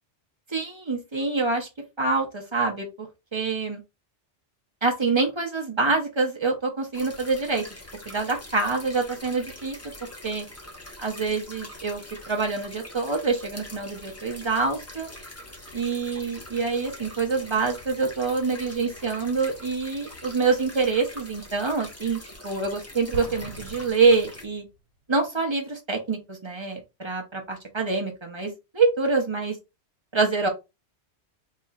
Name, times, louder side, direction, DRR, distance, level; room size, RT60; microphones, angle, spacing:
voice 1, 0.5-1.7 2.0-3.8 4.8-7.8 8.0-9.8 10.2-10.5 11.0-12.0 12.3-15.1 15.7-24.7 25.1-29.6 30.1-30.5, right 4 dB, 25° right, 2 dB, 0.9 m, -26 dB
sound 1, 6.9-24.4, left 1 dB, 15° left, 0.8 m, -44 dB
Explosion, 23.1-25.0, right 1 dB, 85° right, 1.3 m, -41 dB
4.3 x 3.0 x 2.4 m, 0.25 s
omnidirectional pair, 1.2 m